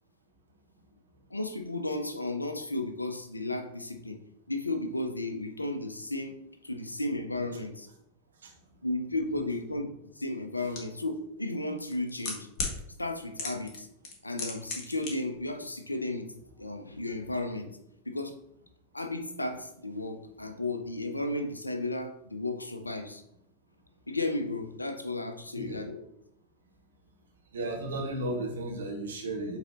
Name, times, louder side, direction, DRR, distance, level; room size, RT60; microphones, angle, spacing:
voice 1, 1.3-4.2 4.5-7.9 8.8-12.5 13.0-13.9 14.2-16.3 16.6-17.7 18.1-18.3 18.9-23.2 24.1-26.0, left 2 dB, 85° left, 7 dB, 0.7 m, -34 dB
sound 1, 10.8-10.9 11.8-12.8 13.4-13.8 14.0-15.1 15.4-15.5, left 4 dB, 40° left, 1.8 m, -34 dB
voice 2, 27.5-29.6, right 1 dB, 65° right, 0 dB, 1.6 m, -34 dB
8.1 x 4.0 x 2.9 m, 0.76 s
figure-of-eight pair, 90°, 0 cm